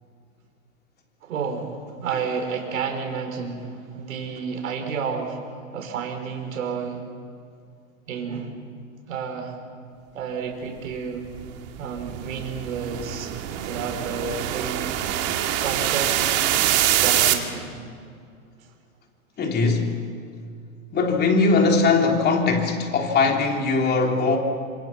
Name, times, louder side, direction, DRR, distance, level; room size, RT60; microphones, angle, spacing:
voice 1, 1.2-5.4 5.7-7.0 8.1-8.5 9.1-9.6 10.1-11.3 11.8-13.3 13.6-14.8 15.6-16.5 17.0-17.7, right 5 dB, 70° right, 4.8 m, -30 dB
sound 1, 11.3-17.3, right 12 dB, 35° right, 2.3 m, -24 dB
voice 2, 19.4-20.0 20.9-24.4, left 4 dB, 20° left, 3.3 m, -20 dB
26.5 x 26.5 x 6.0 m
hypercardioid pair, 120°, 42 cm